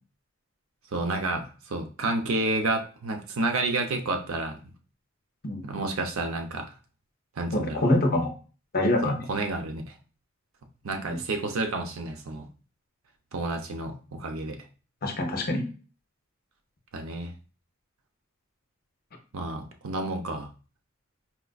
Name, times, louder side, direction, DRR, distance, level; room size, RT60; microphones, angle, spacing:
voice 1, 0.9-4.6 5.6-6.7 7.4-7.8 9.0-9.8 10.8-12.5 13.3-14.6 16.9-17.3 19.3-20.5, right 2 dB, 90° right, 5 dB, 0.6 m, -30 dB
voice 2, 7.5-8.3 8.7-9.3 11.1-11.2 15.0-15.6, left 1 dB, 45° left, 3 dB, 0.7 m, -25 dB
4.3 x 2.4 x 2.3 m, 0.37 s
head